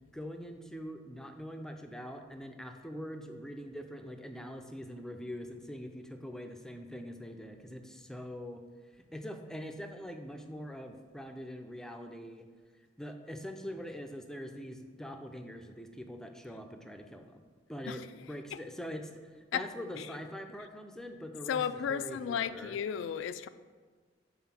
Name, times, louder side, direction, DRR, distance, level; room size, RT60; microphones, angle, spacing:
voice 1, 0.1-8.6 9.1-12.5 13.0-17.4 17.7-18.0 18.3-19.1 19.5-22.8, equal, 5° left, 0.4 m, -43 dB
voice 2, 17.9-18.6 19.5-19.7 20.0-20.2 20.6-20.7 21.5-23.5, left 8 dB, 70° left, 0.3 m, -35 dB
5.7 x 4.1 x 5.8 m
head